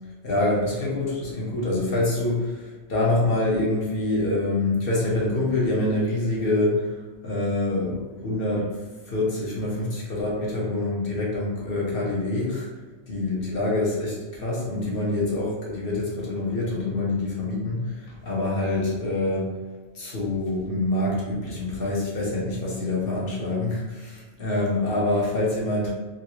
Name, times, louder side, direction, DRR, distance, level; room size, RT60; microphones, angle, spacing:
voice 1, 0.2-8.7 9.1-12.7 13.1-19.5 19.9-25.9, left 2 dB, 50° left, -4 dB, 1.0 m, -26 dB
3.1 x 2.5 x 3.0 m, 1.3 s
omnidirectional pair, 1.2 m